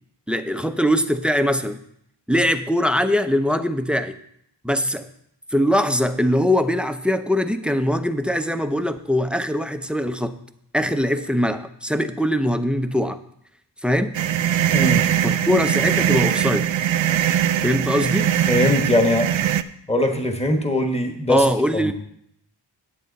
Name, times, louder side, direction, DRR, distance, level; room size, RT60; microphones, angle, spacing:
voice 1, 0.3-1.8 2.3-4.2 4.6-5.1 5.5-10.3 10.7-13.2 13.8-14.1 15.2-16.7 17.6-18.3 21.3-21.9, equal, ahead, 10 dB, 0.6 m, -21 dB
sound 1, 14.1-19.6, right 10 dB, 85° right, 0.5 m, -21 dB
voice 2, 14.7-15.0 18.5-19.3 19.9-21.4 21.7-21.9, left 1 dB, 15° left, 4 dB, 1.3 m, -21 dB
10.0 x 8.4 x 4.0 m, 0.70 s
wide cardioid pair, 70°, 44 cm